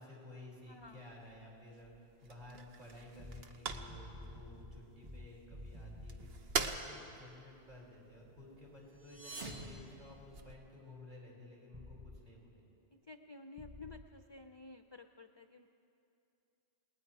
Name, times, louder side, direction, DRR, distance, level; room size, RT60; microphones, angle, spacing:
voice 1, 0.0-12.7, left 1 dB, 45° right, -4 dB, 5.6 m, -54 dB
sound 1, 0.6-10.5, right 4 dB, 60° right, 1.2 m, -46 dB
voice 2, 0.7-1.1 12.9-15.7, left 3 dB, 35° left, 7 dB, 0.4 m, -53 dB
sound 2, 3.2-6.4 11.7-12.2 13.6-14.0, left 2 dB, 20° right, 1.0 m, -50 dB
sound 3, 8.9-10.8, right 2 dB, 85° right, 2.7 m, -49 dB
29.0 x 19.5 x 4.8 m, 2.7 s
omnidirectional pair, 1.2 m